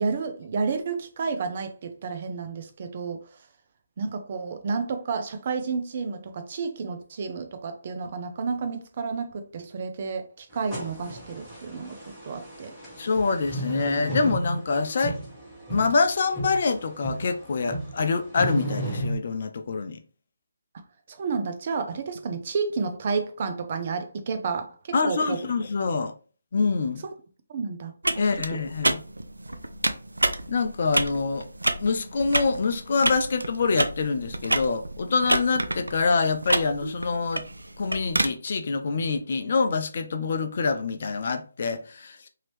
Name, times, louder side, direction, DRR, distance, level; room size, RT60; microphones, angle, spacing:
voice 1, 0.0-3.2 4.0-12.0 12.2-12.7 21.1-25.4 27.0-27.1 27.5-28.6, right 5 dB, 40° right, 0.6 m, -31 dB
sound 1, 10.5-19.2, right 1 dB, 5° right, 1.2 m, -34 dB
voice 2, 13.0-15.2 15.7-20.0 24.9-26.1 26.5-27.0 28.2-29.0 30.5-31.5 31.8-37.4 37.8-42.3, left 4 dB, 50° left, 0.5 m, -25 dB
sound 2, 28.0-38.3, right 1 dB, 90° right, 0.4 m, -29 dB
2.8 x 2.8 x 3.1 m
figure-of-eight pair, 150°, 0 cm